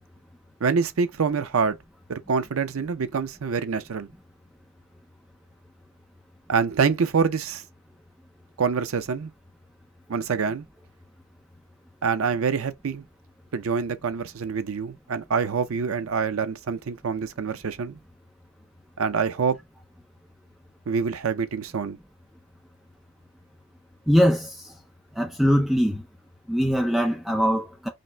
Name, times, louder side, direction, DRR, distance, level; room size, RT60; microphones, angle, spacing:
voice 1, 0.6-1.8 2.1-4.1 6.5-7.6 8.6-9.3 10.1-10.6 12.0-13.0 13.5-18.0 19.0-19.6 20.9-22.0, right 5 dB, 80° right, 0.5 m, -26 dB
voice 2, 24.1-24.7 25.2-26.0 26.5-27.9, equal, ahead, 0.4 m, -22 dB
5.2 x 2.0 x 3.3 m
head